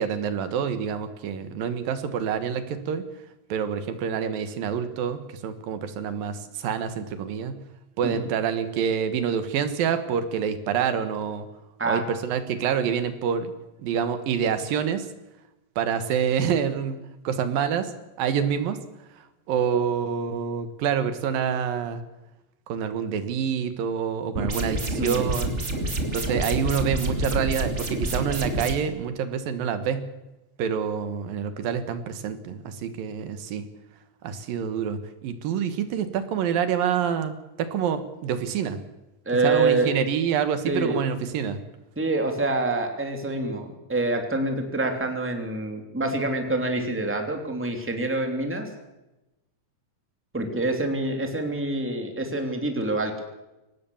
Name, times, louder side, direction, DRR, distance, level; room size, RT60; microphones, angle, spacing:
voice 1, 0.0-3.0 3.5-7.6 8.0-11.5 11.9-13.5 13.8-15.1 15.8-17.0 17.2-17.9 18.2-18.8 19.5-22.0 22.7-25.5 26.1-30.0 30.6-33.6 34.2-38.8 39.4-41.6, right 7 dB, 80° right, 10 dB, 3.2 m, -27 dB
sound 1, 24.4-28.7, right 1 dB, 20° right, 2.6 m, -28 dB
voice 2, 39.3-39.9 40.6-41.0 42.0-48.7 50.3-53.2, right 2 dB, 5° right, 4 dB, 2.5 m, -26 dB
23.5 x 18.5 x 7.1 m, 0.98 s
omnidirectional pair, 4.0 m